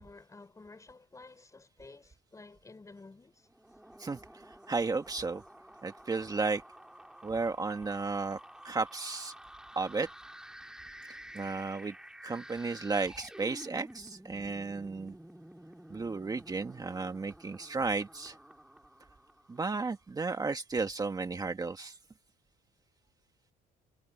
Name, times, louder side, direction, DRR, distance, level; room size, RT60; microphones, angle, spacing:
voice 1, 0.0-3.5, left 3 dB, 20° left, 4.7 m, -52 dB
sound 1, 3.5-19.8, right 1 dB, 5° right, 2.7 m, -51 dB
voice 2, 4.0-5.4 5.8-6.6 7.2-8.4 8.6-9.3 9.8-10.1 11.3-12.0 12.2-15.2 15.9-18.4 19.5-22.0, right 4 dB, 20° right, 1.8 m, -33 dB
cardioid pair, 110°, 17 cm